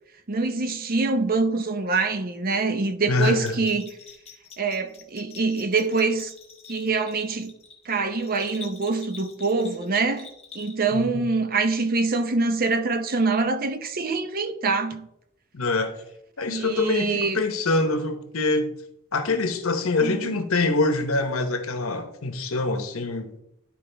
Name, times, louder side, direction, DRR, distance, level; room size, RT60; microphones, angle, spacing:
voice 1, 0.3-3.9 4.6-6.3 6.7-7.5 7.9-10.3 10.5-15.1 16.5-17.4 20.0-20.2, right 3 dB, 45° right, 0.7 m, -25 dB
voice 2, 3.1-3.6 10.9-11.3 15.5-15.9 16.4-18.7 19.1-23.3, left 3 dB, 80° left, 1.0 m, -25 dB
Bell, 3.2-11.0, left 5 dB, 30° left, 1.4 m, -46 dB
11.5 x 4.7 x 3.4 m
head